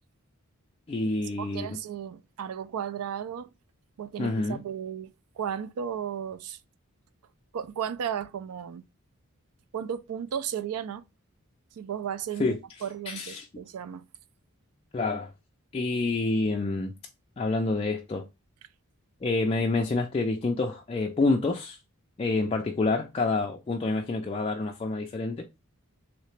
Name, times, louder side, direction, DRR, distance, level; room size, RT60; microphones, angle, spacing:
voice 1, 0.9-1.7 4.2-4.6 12.4-12.6 13.1-13.5 14.9-15.3 15.7-16.9 17.4-18.3 19.2-21.8 22.2-25.4, left 3 dB, 25° left, 0.3 m, -27 dB
voice 2, 1.4-3.5 4.0-6.6 7.5-8.8 9.7-11.0 11.8-14.1, right 8 dB, 85° right, 0.4 m, -34 dB
3.2 x 2.8 x 3.2 m
head